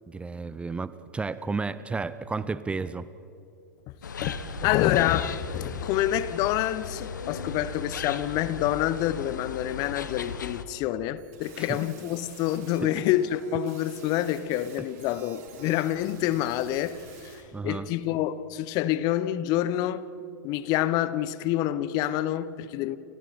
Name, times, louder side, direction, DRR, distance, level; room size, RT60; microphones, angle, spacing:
voice 1, 0.1-3.1 11.6-11.8 17.5-17.9, right 4 dB, 10° right, 0.8 m, -32 dB
sound 1, 4.0-10.6, left 5 dB, 75° left, 1.7 m, -36 dB
voice 2, 4.2-20.0 20.4-23.0, left 13 dB, 40° left, 1.2 m, -27 dB
sound 2, 11.2-17.4, right 6 dB, 50° right, 6.9 m, -50 dB
29.5 x 29.5 x 4.3 m
figure-of-eight pair, 100°, 10 cm